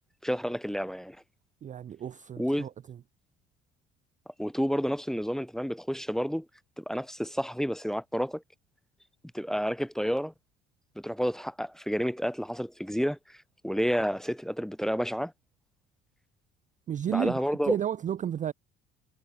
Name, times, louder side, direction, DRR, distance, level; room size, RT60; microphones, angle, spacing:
voice 1, 0.2-1.2 2.4-2.7 4.4-6.5 6.8-8.4 9.3-10.3 11.0-13.2 13.6-15.3 17.1-17.8, equal, ahead, 0.8 m, -30 dB
voice 2, 1.6-3.0 16.9-18.5, right 9 dB, 25° right, 0.5 m, -32 dB
figure-of-eight pair, 55°, 35 cm